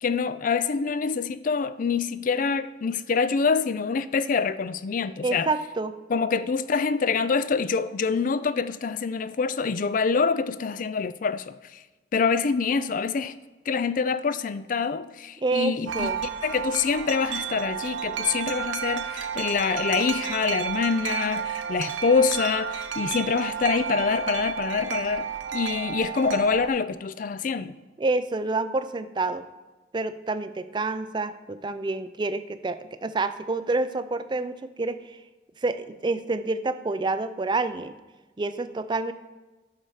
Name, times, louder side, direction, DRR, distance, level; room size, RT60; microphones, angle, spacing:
voice 1, 0.0-5.5 6.1-11.8 12.1-13.3 13.7-16.1 16.4-27.7, left 5 dB, 45° left, 0.4 m, -26 dB
voice 2, 5.2-5.9 15.4-16.2 28.0-29.4 29.9-35.0 35.6-37.9 38.4-39.1, right 3 dB, 25° right, 0.4 m, -28 dB
Wind chime, 15.9-26.7, right 8 dB, 90° right, 0.7 m, -31 dB
8.8 x 5.5 x 6.4 m
head